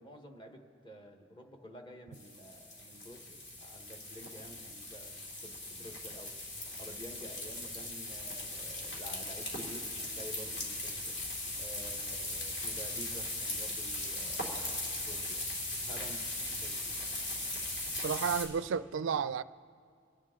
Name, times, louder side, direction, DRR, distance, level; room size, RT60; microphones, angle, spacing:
voice 1, 0.0-6.4 6.8-11.1 11.5-15.4 15.8-16.2 16.5-16.9, equal, 25° left, 1.2 m, -50 dB
sound 1, 2.1-18.5, left 2 dB, 55° left, 2.8 m, -39 dB
voice 2, 18.0-19.4, right 7 dB, 70° right, 0.4 m, -32 dB
25.5 x 10.5 x 3.7 m
head